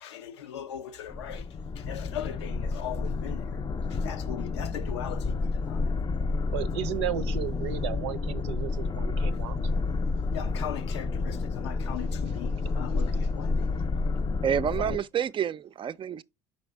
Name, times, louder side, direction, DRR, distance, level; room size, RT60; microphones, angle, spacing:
voice 1, 0.0-3.6 3.9-5.9 10.3-14.1, left 10 dB, 90° left, 0.6 m, -39 dB
sound 1, 1.1-15.0, left 3 dB, 30° left, 0.5 m, -30 dB
voice 2, 6.3-9.7, right 11 dB, 85° right, 0.5 m, -34 dB
voice 3, 14.4-16.2, right 8 dB, 35° right, 0.4 m, -28 dB
5.4 x 5.3 x 3.3 m
hypercardioid pair, 65°, 14 cm